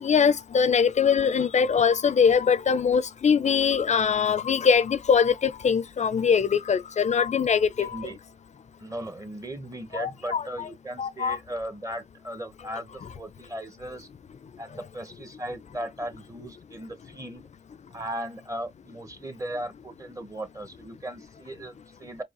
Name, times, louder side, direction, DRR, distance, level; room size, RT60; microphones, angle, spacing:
voice 1, 0.0-7.9 9.9-10.7 11.0-11.4, left 6 dB, 45° left, 0.5 m, -22 dB
voice 2, 7.8-8.2 8.8-14.1 14.6-17.5 17.9-22.2, right 1 dB, 20° right, 1.0 m, -37 dB
4.7 x 2.4 x 3.0 m
cardioid pair, 60°, 16 cm